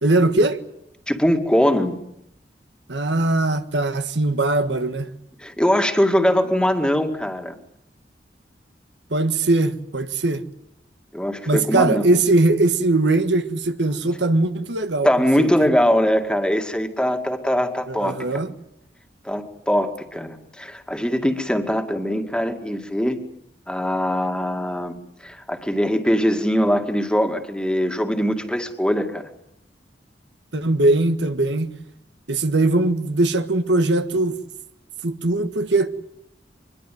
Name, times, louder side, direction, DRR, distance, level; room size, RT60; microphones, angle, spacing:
voice 1, 0.0-0.6 2.9-5.1 9.1-10.4 11.5-15.1 15.4-15.7 17.9-18.5 30.5-31.7 32.3-34.4 35.0-35.9, right 2 dB, 80° right, 1.6 m, -20 dB
voice 2, 1.1-2.0 5.4-7.6 11.1-12.1 15.0-18.5 19.2-23.2 23.7-24.9 25.2-29.2, equal, 5° left, 2.2 m, -21 dB
24.0 x 21.5 x 9.4 m
head